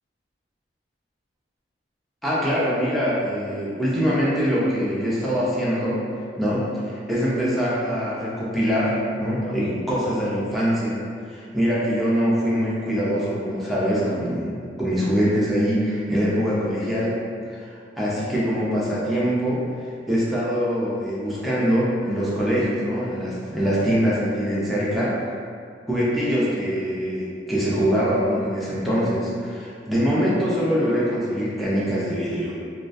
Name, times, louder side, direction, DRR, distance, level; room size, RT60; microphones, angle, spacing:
voice 1, 2.2-6.0 6.4-11.0 11.3-17.2 17.5-25.1 25.9-32.6, equal, ahead, -8 dB, 0.4 m, -23 dB
2.2 x 2.1 x 2.5 m, 2.2 s
head